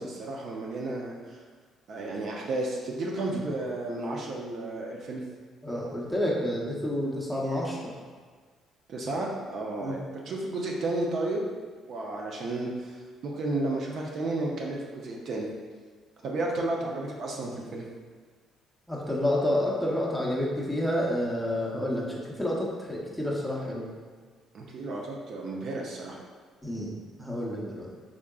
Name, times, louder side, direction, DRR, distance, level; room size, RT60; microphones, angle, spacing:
voice 1, 0.0-1.4 1.9-5.2 8.9-11.5 11.9-15.5 16.2-17.8 24.5-26.2, right 2 dB, 60° right, -1 dB, 0.5 m, -32 dB
voice 2, 5.6-7.9 9.8-10.0 18.9-22.0 22.4-23.9 26.6-26.9 27.2-27.9, left 1 dB, ahead, -4 dB, 0.8 m, -29 dB
3.6 x 3.5 x 2.3 m, 1.5 s
cardioid pair, 95°, 0 cm